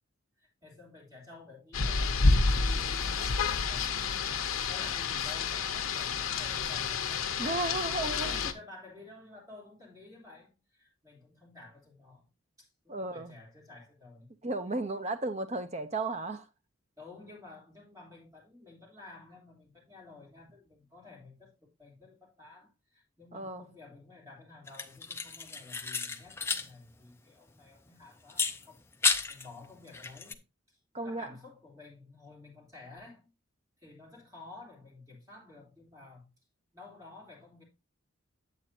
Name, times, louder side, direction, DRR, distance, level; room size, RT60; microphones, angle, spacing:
voice 1, 0.4-7.4 8.0-12.3 12.6-14.3 17.0-33.3 33.8-36.3 36.7-37.6, left 3 dB, 15° right, 3.6 m, -52 dB
Rain, 1.7-8.5, left 4 dB, 80° left, 0.9 m, -29 dB
voice 2, 7.4-8.3 12.9-13.3 14.4-16.4 23.3-23.6 30.9-31.3, right 2 dB, 30° right, 0.8 m, -34 dB
sound 1, 24.7-26.7 27.0-27.1 28.3-29.5 29.9-30.3, left 4 dB, 10° left, 0.4 m, -32 dB
8.4 x 8.2 x 2.8 m
head